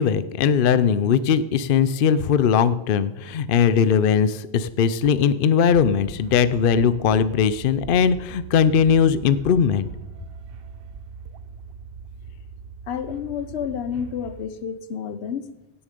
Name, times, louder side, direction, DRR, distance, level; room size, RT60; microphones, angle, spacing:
voice 1, 0.0-9.9, left 7 dB, 60° left, 14 dB, 0.7 m, -19 dB
sound 1, 5.7-14.5, right 5 dB, 65° right, 0.9 m, -41 dB
voice 2, 12.9-15.5, left 8 dB, 80° left, 13 dB, 1.1 m, -30 dB
17.0 x 7.1 x 5.2 m, 0.93 s
omnidirectional pair, 1.1 m